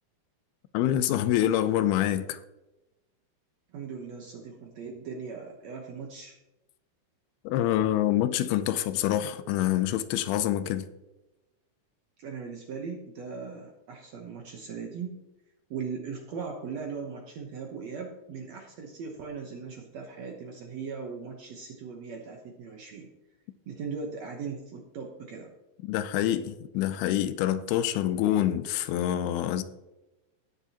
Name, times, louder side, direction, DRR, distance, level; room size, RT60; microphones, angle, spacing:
voice 1, 0.7-2.4 7.5-10.9 25.8-29.6, left 12 dB, 85° left, 2.5 m, -26 dB
voice 2, 3.7-6.4 12.2-15.2 15.7-23.1 23.7-25.5, right 5 dB, 75° right, 1.5 m, -39 dB
18.0 x 7.0 x 2.9 m
omnidirectional pair, 4.5 m